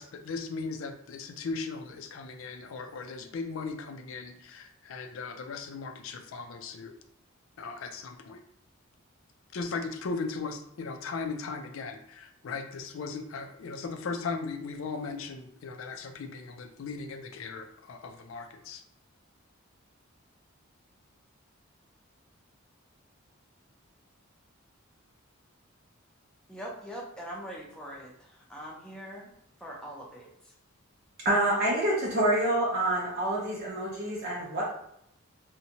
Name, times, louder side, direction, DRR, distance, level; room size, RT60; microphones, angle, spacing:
voice 1, 0.0-6.9 7.6-8.4 9.5-18.8, left 4 dB, 70° left, 6 dB, 0.4 m, -37 dB
voice 2, 26.5-29.3 29.6-30.3, equal, 5° left, -4 dB, 0.5 m, -42 dB
voice 3, 31.2-34.6, right 1 dB, 50° right, -5 dB, 0.6 m, -27 dB
2.7 x 2.1 x 2.8 m, 0.74 s
head